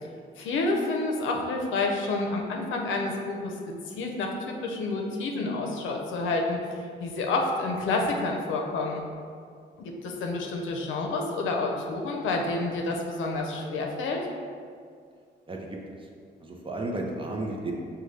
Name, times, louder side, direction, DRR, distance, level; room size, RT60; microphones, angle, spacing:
voice 1, 0.4-3.6 4.0-9.0 9.8-14.2, left 3 dB, 80° left, 1 dB, 0.6 m, -29 dB
voice 2, 15.5-15.8 16.4-17.7, right 2 dB, 25° right, 0 dB, 0.6 m, -33 dB
5.3 x 2.2 x 3.2 m, 2.2 s
cardioid pair, 90°, 20 cm